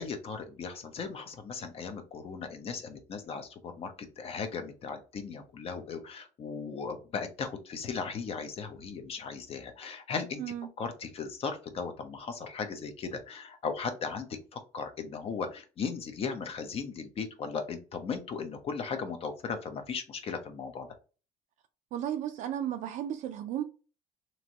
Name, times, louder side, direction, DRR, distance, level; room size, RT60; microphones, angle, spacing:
voice 1, 0.0-10.4 10.8-20.9, left 5 dB, 45° left, 0.7 m, -37 dB
voice 2, 10.4-10.7 21.9-23.6, right 10 dB, 60° right, 0.4 m, -34 dB
3.0 x 2.6 x 2.8 m
cardioid pair, 120°, 14 cm